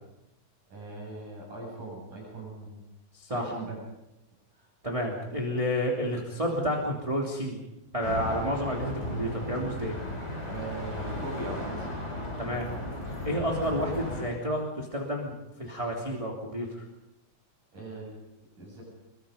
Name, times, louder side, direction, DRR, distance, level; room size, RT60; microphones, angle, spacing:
voice 1, 0.7-2.8 3.3-3.8 10.5-12.0 17.7-18.2 18.6-18.8, right 2 dB, 70° right, -2 dB, 9.3 m, -39 dB
voice 2, 3.1-3.5 4.8-7.6 7.9-10.0 12.4-12.6 13.2-16.7, equal, 10° right, -2 dB, 2.8 m, -30 dB
sound 1, 8.0-14.2, left 1 dB, 20° left, 7.5 m, -35 dB
26.5 x 23.0 x 5.3 m, 0.89 s
omnidirectional pair, 3.7 m